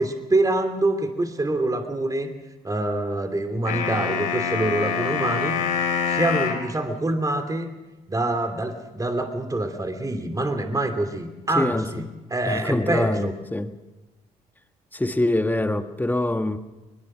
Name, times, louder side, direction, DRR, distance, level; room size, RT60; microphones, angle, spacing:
voice 1, 0.0-2.3 2.6-5.6 6.1-7.7 8.1-13.3, right 2 dB, 20° right, 6 dB, 2.7 m, -25 dB
sound 1, 3.7-6.7, left 7 dB, 85° left, 3.0 m, -25 dB
voice 2, 11.5-12.1 12.5-13.7 14.9-16.6, left 1 dB, 10° left, 8 dB, 1.6 m, -24 dB
22.0 x 21.0 x 6.2 m, 1.1 s
hypercardioid pair, 55°, 17 cm